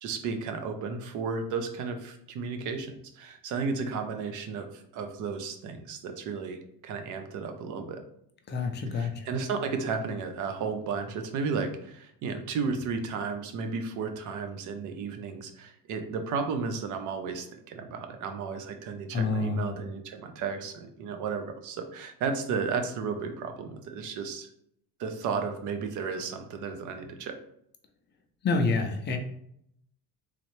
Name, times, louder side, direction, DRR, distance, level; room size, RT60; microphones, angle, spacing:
voice 1, 0.0-8.0 8.9-24.5 25.0-27.4, right 5 dB, 50° right, 6 dB, 0.7 m, -33 dB
voice 2, 8.5-9.3 19.1-19.7 28.4-29.2, left 3 dB, 30° left, 4 dB, 0.5 m, -27 dB
3.7 x 3.2 x 3.1 m, 0.71 s
cardioid pair, 145°, 39 cm